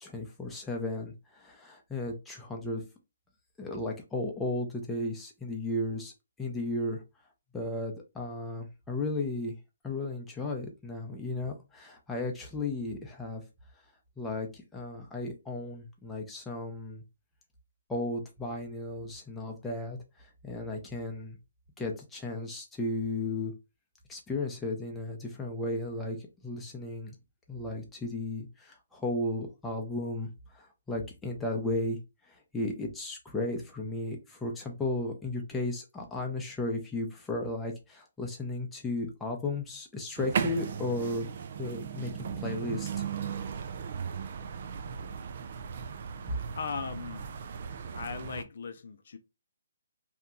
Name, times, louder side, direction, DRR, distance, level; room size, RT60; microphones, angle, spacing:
voice 1, 0.0-2.8 3.6-6.1 6.4-7.0 7.5-9.5 9.8-13.4 14.2-17.0 17.9-21.4 21.8-23.5 24.1-26.2 26.4-27.2 27.5-32.0 32.3-41.3 41.6-42.1 42.4-43.0, left 2 dB, 5° left, 0.6 m, -34 dB
sound 1, 40.2-48.4, right 7 dB, 50° right, 0.4 m, -36 dB
voice 2, 46.5-47.2 47.9-49.2, left 5 dB, 60° left, 0.4 m, -38 dB
2.8 x 2.2 x 3.7 m
hypercardioid pair, 155°, 0 cm